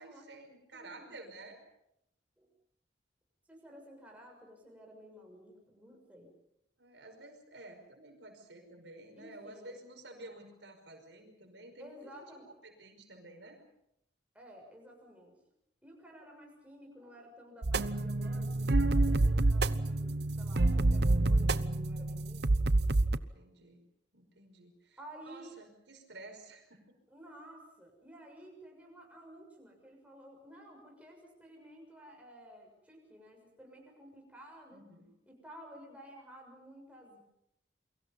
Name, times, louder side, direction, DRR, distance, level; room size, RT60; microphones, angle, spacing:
voice 1, 0.0-1.6 6.8-12.4 12.6-13.6 23.3-23.8 24.1-27.0 34.7-35.1, right 2 dB, 75° right, 4 dB, 5.5 m, -52 dB
voice 2, 0.7-1.2 2.4-2.5 3.5-6.3 9.2-9.7 11.8-12.5 14.3-15.3 15.8-23.1 25.0-25.6 27.1-34.8 35.3-37.2, equal, 5° right, 0 dB, 6.8 m, -53 dB
sound 1, 17.6-23.2, right 2 dB, 60° right, 0.9 m, -28 dB
29.5 x 23.5 x 5.6 m, 0.79 s
head